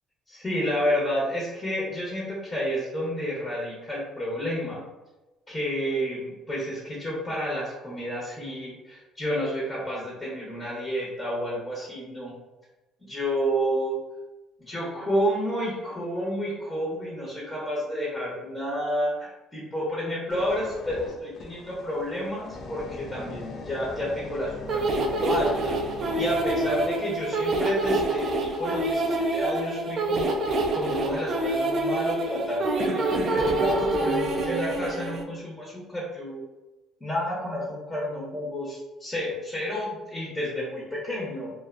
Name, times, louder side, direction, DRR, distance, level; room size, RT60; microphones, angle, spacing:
voice 1, 0.3-4.8 5.5-12.4 13.0-14.0 14.6-25.8 26.1-30.4 30.7-33.0 33.3-36.4 37.0-41.5, equal, 15° left, -6 dB, 1.0 m, -30 dB
sound 1, 20.3-31.2 31.8-32.0, left 3 dB, 55° left, 0.4 m, -42 dB
sound 2, 24.7-35.2, right 2 dB, 55° right, 0.4 m, -26 dB
2.4 x 2.2 x 2.5 m, 1.1 s
supercardioid pair, 80°, 0 cm